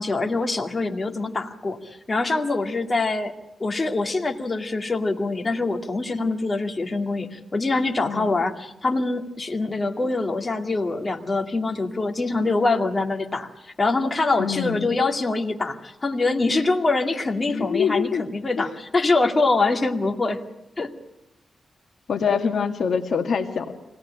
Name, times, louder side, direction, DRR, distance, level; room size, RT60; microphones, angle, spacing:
voice 1, 0.0-3.3 3.6-20.4 20.8-20.9, left 3 dB, 30° left, 3 dB, 2.2 m, -24 dB
voice 2, 14.4-15.0 17.5-18.3 18.6-18.7 22.1-23.7, left 6 dB, 70° left, 5 dB, 1.8 m, -25 dB
25.0 x 18.5 x 9.9 m, 0.90 s
wide cardioid pair, 110°, 0 cm